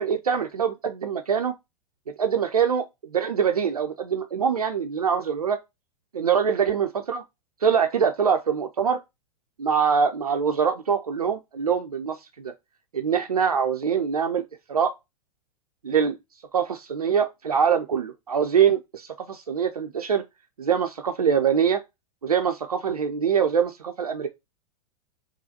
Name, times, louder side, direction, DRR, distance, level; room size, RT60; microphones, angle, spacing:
voice 1, 0.0-1.5 2.2-2.8 3.1-5.6 6.1-7.2 7.6-9.0 9.6-12.5 12.9-14.4 14.7-14.9 15.8-16.2 16.5-20.2 20.6-21.8 22.2-24.3, right 7 dB, 75° right, 0.6 m, -24 dB
3.8 x 2.9 x 2.8 m
figure-of-eight pair, 100°, 19 cm